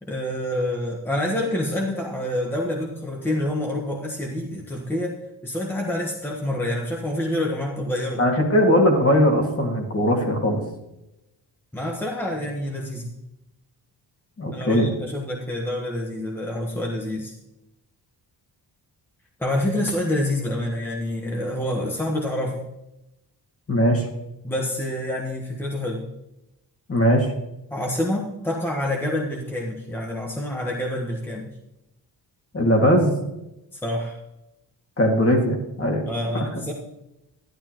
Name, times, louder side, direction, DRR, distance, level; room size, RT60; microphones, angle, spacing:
voice 1, 0.0-5.1 5.4-8.2 11.7-13.1 14.5-17.3 19.4-22.6 24.4-26.0 27.7-31.5 33.8-34.2 36.0-36.7, left 1 dB, 5° left, -1 dB, 1.2 m, -27 dB
voice 2, 8.2-10.6 14.4-14.9 23.7-24.1 26.9-27.3 32.5-33.1 35.0-36.1, equal, 30° left, 2 dB, 2.2 m, -19 dB
12.0 x 11.5 x 3.0 m, 0.90 s
wide cardioid pair, 160°, 42 cm